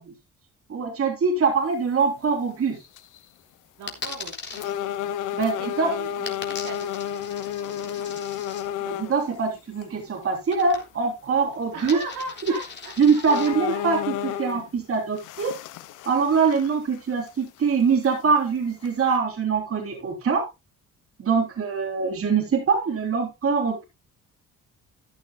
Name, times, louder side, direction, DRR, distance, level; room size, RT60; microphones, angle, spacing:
voice 1, 0.7-2.8 5.3-5.9 8.8-12.0 13.0-15.5 16.1-20.4 21.2-23.8, right 5 dB, 50° right, 3 dB, 3.6 m, -23 dB
sound 1, 2.1-2.3 2.8-3.2 3.8-3.9 4.5-9.2 9.8-9.9 12.3-12.4 12.8-12.9 13.3-14.7 15.1-17.0 17.3-17.4 18.0-18.1 18.8-19.2, left 10 dB, 90° left, 1.1 m, -31 dB
voice 2, 3.8-4.7 5.4-7.2 11.7-13.8 14.2-14.6, right 3 dB, 85° right, 1 dB, 4.9 m, -39 dB
Coin (dropping), 3.9-4.6 6.3-8.6 10.5-11.1 11.4-13.5, left 5 dB, 35° left, 3.7 m, -39 dB
14.0 x 11.5 x 2.3 m, 0.24 s
cardioid pair, 90°, 30 cm